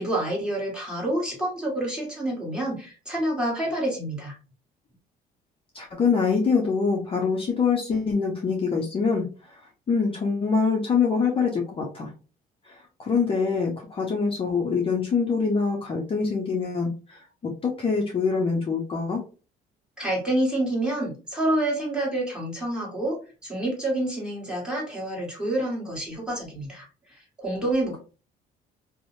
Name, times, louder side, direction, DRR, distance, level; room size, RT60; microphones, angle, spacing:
voice 1, 0.0-4.4 20.0-28.0, right 1 dB, 5° right, -4 dB, 1.3 m, -28 dB
voice 2, 5.7-9.6 9.9-12.1 12.7-17.2 17.6-19.2, left 5 dB, 35° left, 0 dB, 0.6 m, -24 dB
2.6 x 2.0 x 2.9 m, 0.35 s
cardioid pair, 110°, 17 cm